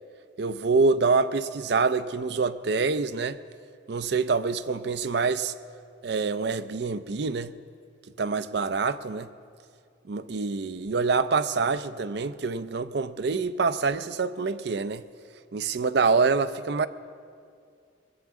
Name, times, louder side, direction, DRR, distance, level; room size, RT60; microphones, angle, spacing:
voice 1, 0.4-3.4 3.9-5.5 6.0-7.5 8.2-9.3 10.1-15.0 15.5-16.9, right 4 dB, 60° right, 12 dB, 0.5 m, -26 dB
20.0 x 8.1 x 7.5 m, 2.3 s
head